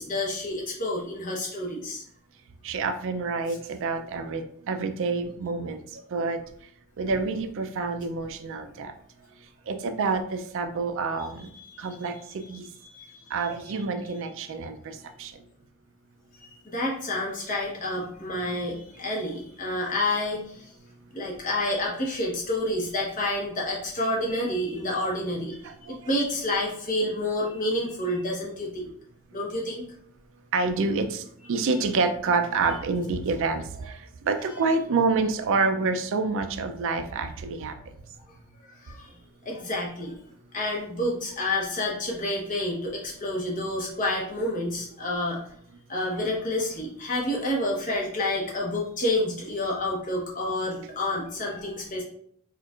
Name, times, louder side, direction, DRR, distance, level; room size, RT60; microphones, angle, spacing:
voice 1, 0.0-2.0 3.5-3.6 11.2-12.5 12.8-13.1 13.7-14.3 16.6-20.7 21.1-25.6 25.9-28.9 29.3-29.9 31.6-31.7 34.4-34.6 38.8-39.1 39.4-40.2 40.5-45.4 45.9-52.0, left 1 dB, 40° left, -3 dB, 0.9 m, -29 dB
voice 2, 2.6-6.4 7.0-8.9 9.7-11.5 11.8-12.1 12.5-12.6 13.3-15.3 25.6-26.0 30.5-34.0 34.3-37.7, right 4 dB, 60° right, 7 dB, 0.4 m, -27 dB
4.4 x 2.4 x 2.4 m, 0.65 s
head